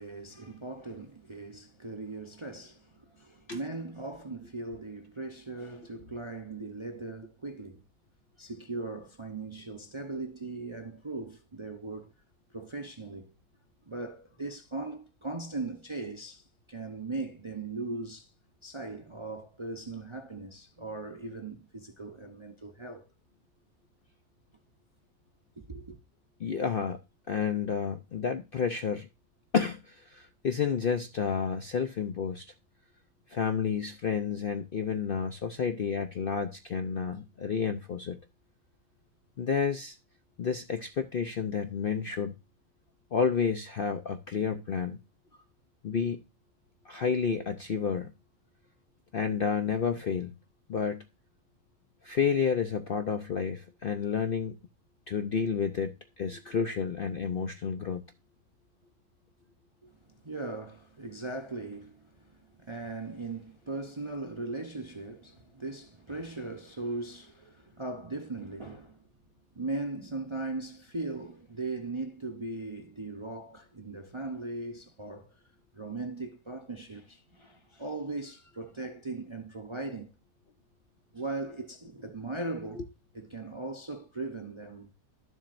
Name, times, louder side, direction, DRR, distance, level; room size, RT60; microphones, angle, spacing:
voice 1, 0.0-7.8 8.4-12.1 12.5-13.3 13.9-18.3 18.6-23.1 25.6-26.0 59.8-60.0 60.2-69.0 69.6-75.4 75.7-80.1 81.1-82.8 83.1-84.9, right 3 dB, 30° right, 0.6 m, -39 dB
voice 2, 26.4-27.0 27.3-29.1 29.5-32.5 33.3-38.2 39.4-40.0 40.4-42.3 43.1-45.0 45.8-46.2 46.9-48.1 49.1-50.3 50.7-51.0 52.0-54.6 55.1-58.0, left 6 dB, 55° left, 0.6 m, -30 dB
12.0 x 7.3 x 2.5 m
omnidirectional pair, 1.6 m